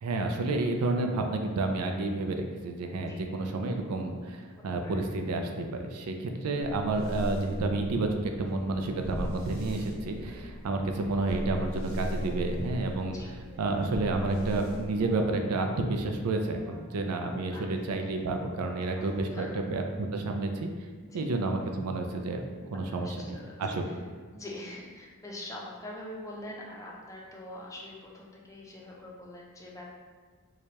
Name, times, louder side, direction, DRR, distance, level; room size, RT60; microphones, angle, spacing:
voice 1, 0.0-13.2 13.6-20.7 21.1-22.4 22.7-23.8, right 2 dB, 90° right, 4 dB, 0.4 m, -30 dB
sound 1, 6.6-15.5, equal, 70° right, 1.2 m, -39 dB
voice 2, 10.1-10.6 13.1-13.3 17.5-17.7 18.9-19.5 21.0-21.3 22.9-24.0 24.3-29.9, left 1 dB, 15° left, -3 dB, 0.5 m, -44 dB
sound 2, 11.9-12.5 13.4-14.0 14.9-15.4 16.3-16.9 17.8-18.2 19.0-19.3, right 1 dB, 30° right, 0.8 m, -51 dB
4.7 x 2.2 x 2.8 m, 1.5 s
head